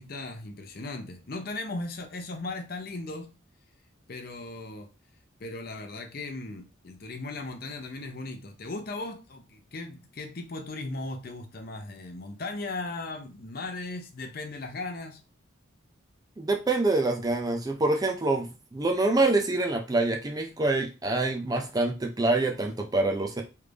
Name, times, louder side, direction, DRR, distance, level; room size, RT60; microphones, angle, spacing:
voice 1, 0.0-3.4 4.1-4.9 5.4-15.2, left 2 dB, 45° left, 0.6 m, -37 dB
voice 2, 16.4-23.4, right 2 dB, 20° right, 0.4 m, -26 dB
3.2 x 2.5 x 3.4 m
head